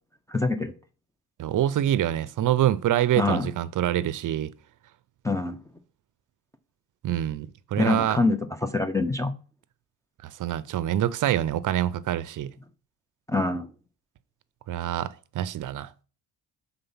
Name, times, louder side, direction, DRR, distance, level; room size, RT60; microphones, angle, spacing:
voice 1, 0.3-0.7 3.2-3.5 5.2-5.6 7.8-9.3 13.3-13.7, left 3 dB, 10° left, 0.4 m, -25 dB
voice 2, 1.4-4.5 7.0-8.2 10.2-12.5 14.7-15.9, right 12 dB, 55° right, 0.5 m, -26 dB
6.9 x 3.9 x 5.5 m
cardioid pair, 135°, 39 cm